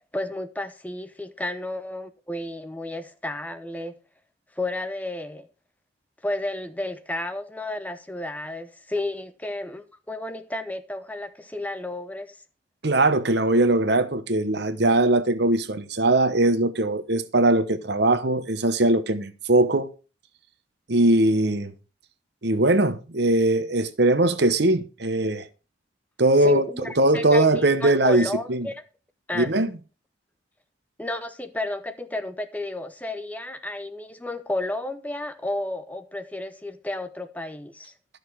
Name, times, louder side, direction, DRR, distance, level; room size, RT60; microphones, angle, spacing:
voice 1, 0.1-3.9 4.6-5.5 6.2-12.4 26.4-28.8 29.3-29.5 31.0-37.9, left 1 dB, 10° left, 0.6 m, -32 dB
voice 2, 12.8-19.9 20.9-21.7 22.4-25.5 26.2-26.6 27.0-28.7 29.3-29.7, right 2 dB, 55° right, 1.0 m, -20 dB
13.0 x 6.6 x 4.6 m
head